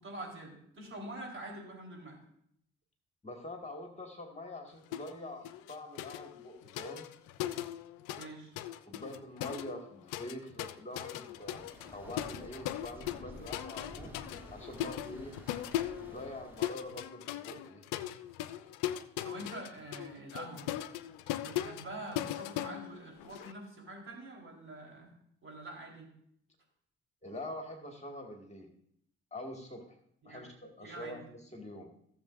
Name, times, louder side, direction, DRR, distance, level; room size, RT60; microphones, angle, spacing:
voice 1, 0.0-2.2 8.2-8.5 19.2-20.7 21.4-25.1 25.4-26.1 30.2-30.5 30.8-31.2, right 1 dB, 40° right, 0 dB, 4.0 m, -45 dB
voice 2, 3.2-7.1 8.9-11.6 11.9-14.1 14.5-15.4 16.1-17.8 27.2-28.7 29.3-30.0 30.2-31.9, left 1 dB, 20° left, 2 dB, 2.0 m, -45 dB
sound 1, 4.9-5.2 5.4-8.3 8.6-23.5, left 13 dB, 70° left, 0.6 m, -39 dB
sound 2, 11.2-17.0, equal, 5° right, 4.2 m, -51 dB
16.5 x 7.1 x 2.6 m, 0.70 s
hypercardioid pair, 45°, 32 cm